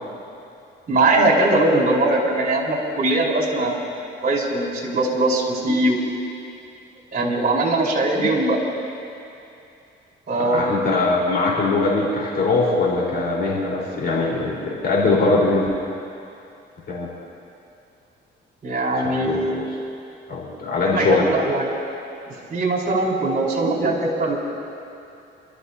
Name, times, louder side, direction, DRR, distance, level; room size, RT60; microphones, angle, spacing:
voice 1, 0.9-3.8 4.2-6.0 7.1-8.6 10.3-10.9 18.6-19.7 21.0-21.7 22.5-24.4, right 2 dB, 45° right, -4 dB, 4.5 m, -21 dB
voice 2, 10.4-15.7 16.9-17.1 19.2-19.6 20.3-21.2, left 3 dB, 55° left, -5 dB, 4.5 m, -21 dB
29.0 x 13.5 x 2.9 m, 2.7 s
cardioid pair, 90°, 20 cm